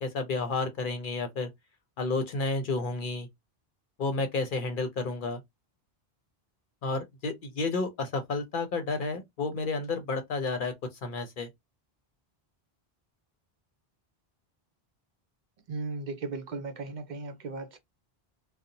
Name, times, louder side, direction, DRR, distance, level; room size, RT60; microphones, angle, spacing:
voice 1, 0.0-1.5 2.0-3.3 4.0-5.4 6.8-10.7 11.0-11.5, left 3 dB, 60° left, 0.7 m, -31 dB
voice 2, 15.7-17.8, right 3 dB, 55° right, 0.7 m, -36 dB
2.7 x 2.0 x 2.6 m
omnidirectional pair, 1.0 m